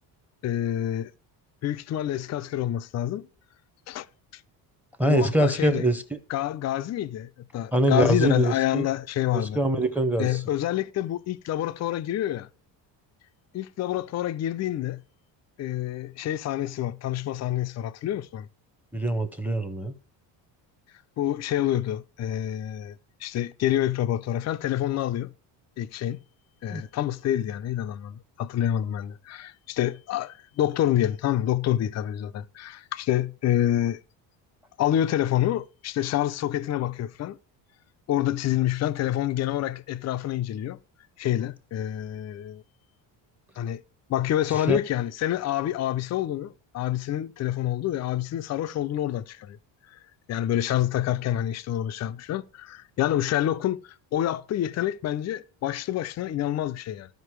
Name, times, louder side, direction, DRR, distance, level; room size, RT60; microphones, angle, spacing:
voice 1, 0.4-1.1 1.6-3.3 3.9-4.1 4.3-4.4 5.1-5.9 6.3-9.6 10.2-12.5 13.5-15.0 15.6-18.5 21.2-25.3 25.8-26.2 26.6-34.0 34.8-37.4 38.1-40.8 41.2-42.6 43.6-43.8 44.1-49.6 49.9-50.0 50.3-57.1, left 12 dB, 35° left, 0.5 m, -27 dB
voice 2, 5.0-6.2 7.7-8.9 9.3-10.4 18.9-19.9 26.7-26.8 44.5-44.8, right 1 dB, 5° right, 0.8 m, -24 dB
14.0 x 5.4 x 3.1 m
cardioid pair, 135°, 46 cm